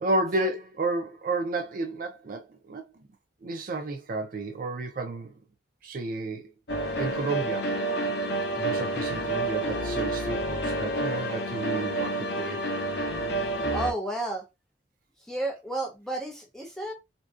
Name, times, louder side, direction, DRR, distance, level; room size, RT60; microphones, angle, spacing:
voice 1, 0.0-3.0 3.4-5.3 5.8-6.5 7.0-7.8 8.6-12.6, right 2 dB, 50° right, 0.4 m, -32 dB
sound 1, 6.7-13.9, right 1 dB, 65° left, 0.5 m, -29 dB
voice 2, 13.7-14.5 15.2-16.9, right 2 dB, 5° left, 0.5 m, -32 dB
2.6 x 2.1 x 2.4 m
head